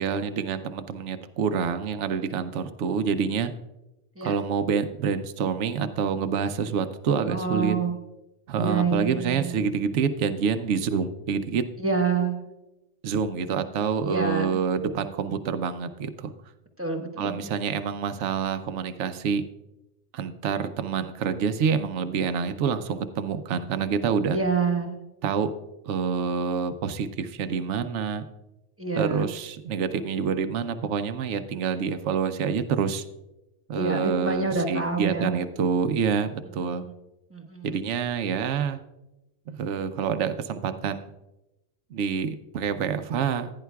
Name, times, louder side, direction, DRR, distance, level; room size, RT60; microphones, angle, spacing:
voice 1, 0.0-3.5 4.2-7.8 8.5-11.6 13.0-16.3 17.2-19.4 20.1-24.4 25.2-25.5 25.8-28.2 28.9-33.0 33.7-36.9 37.6-38.8 39.5-41.1 41.9-43.5, right 6 dB, 75° right, 9 dB, 1.0 m, -27 dB
voice 2, 7.3-8.0 8.5-9.6 11.8-12.4 14.0-14.5 16.8-17.5 24.3-25.0 28.8-29.3 33.7-35.3 36.6-36.9 37.3-37.7, right 4 dB, 10° right, 2 dB, 0.9 m, -27 dB
15.5 x 10.0 x 2.3 m, 0.95 s
omnidirectional pair, 1.2 m